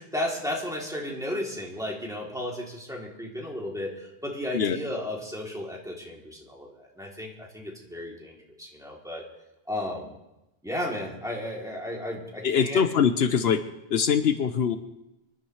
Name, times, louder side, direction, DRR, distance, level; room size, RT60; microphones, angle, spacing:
voice 1, 0.0-9.2 9.7-10.1 10.6-12.8, left 1 dB, 5° right, -3 dB, 2.9 m, -34 dB
voice 2, 12.4-13.6 13.9-14.8, left 7 dB, 75° left, 10 dB, 1.0 m, -23 dB
25.5 x 12.0 x 3.2 m, 0.94 s
omnidirectional pair, 1.1 m